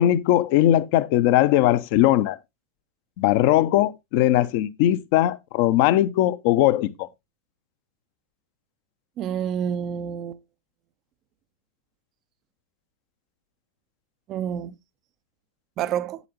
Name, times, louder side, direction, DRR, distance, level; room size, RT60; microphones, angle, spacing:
voice 1, 0.0-2.4 3.2-7.1, left 13 dB, 45° left, 0.7 m, -20 dB
voice 2, 9.2-10.4 14.3-14.7 15.8-16.2, right 9 dB, 35° right, 0.5 m, -28 dB
9.4 x 8.2 x 2.9 m
figure-of-eight pair, 90°, 0 cm